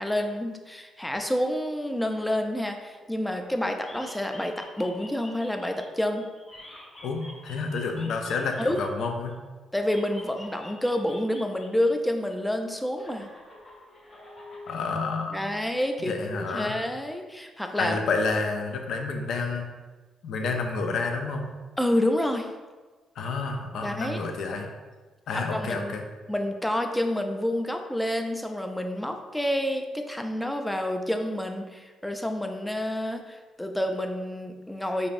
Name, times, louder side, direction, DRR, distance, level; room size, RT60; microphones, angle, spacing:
voice 1, 0.0-6.3 8.6-8.8 9.7-13.3 15.3-18.0 21.8-22.5 23.8-24.2 25.3-25.9 26.3-35.1, left 1 dB, 5° left, 5 dB, 0.4 m, -28 dB
sound 1, 1.1-3.5 3.8-9.3 9.8-11.9 12.2-14.8, left 1 dB, 30° left, 1.5 m, -48 dB
voice 2, 7.0-9.3 14.7-15.5 16.0-16.7 17.8-19.7 20.2-21.5 23.2-24.7 25.3-26.0, left 4 dB, 70° left, 4 dB, 0.5 m, -29 dB
4.9 x 2.7 x 2.5 m, 1.3 s
cardioid pair, 90°, 0 cm